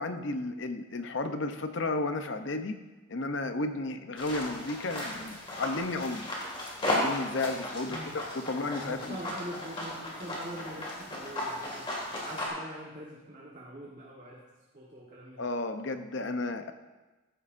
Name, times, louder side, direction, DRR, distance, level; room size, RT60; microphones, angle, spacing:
voice 1, 0.0-2.8 3.1-6.3 6.9-9.3 15.4-16.7, left 2 dB, 60° left, 8 dB, 0.7 m, -33 dB
sound 1, 4.2-12.5, left 1 dB, 25° left, 2.1 m, -35 dB
voice 2, 7.8-8.2 8.5-8.6 8.8-11.9 12.2-14.4 14.7-15.5, right 1 dB, 35° right, -5 dB, 1.3 m, -43 dB
14.5 x 9.8 x 2.6 m, 1.2 s
head